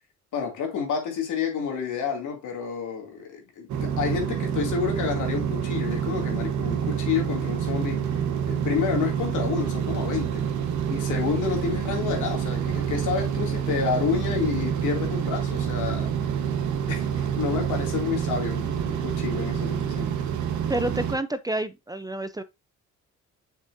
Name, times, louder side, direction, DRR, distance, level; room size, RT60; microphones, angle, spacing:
voice 1, 0.3-8.1 8.5-10.4 10.9-16.1 16.9-20.1, left 6 dB, 80° left, 2.6 m, -29 dB
sound 1, 3.7-21.2, right 8 dB, 70° right, 1.2 m, -27 dB
voice 2, 20.7-22.4, right 1 dB, 15° right, 0.5 m, -29 dB
6.6 x 6.3 x 2.6 m
cardioid pair, 90°, 30 cm